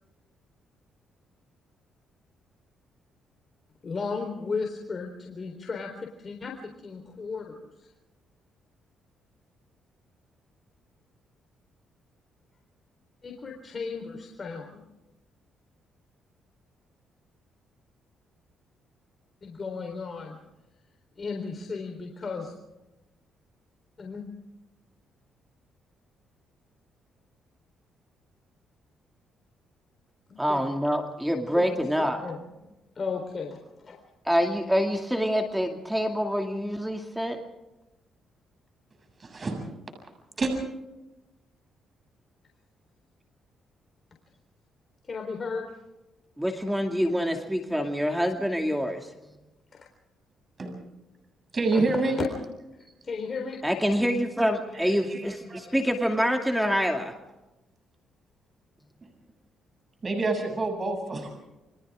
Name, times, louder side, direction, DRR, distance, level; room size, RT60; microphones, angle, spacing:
voice 1, 3.8-5.9 6.2-7.9 13.2-14.8 19.4-20.4 21.2-22.5 24.0-24.2 30.5-30.6 31.5-31.8 32.2-32.5 33.0-34.0 45.1-45.7 49.7-49.9 51.7-51.8 52.2-52.3 53.0-53.6 54.8-55.4 55.6-55.7, left 4 dB, 40° left, 2 dB, 4.0 m, -35 dB
voice 2, 30.4-32.2 34.3-37.4 46.4-49.1 53.6-57.1, equal, 5° right, 4 dB, 2.4 m, -26 dB
voice 3, 39.2-39.6 40.4-40.5 50.6-50.7 51.5-52.2 54.7-55.6 60.0-61.3, right 3 dB, 35° right, 3 dB, 7.2 m, -28 dB
29.0 x 24.5 x 3.7 m, 1.0 s
cardioid pair, 90°, 0 cm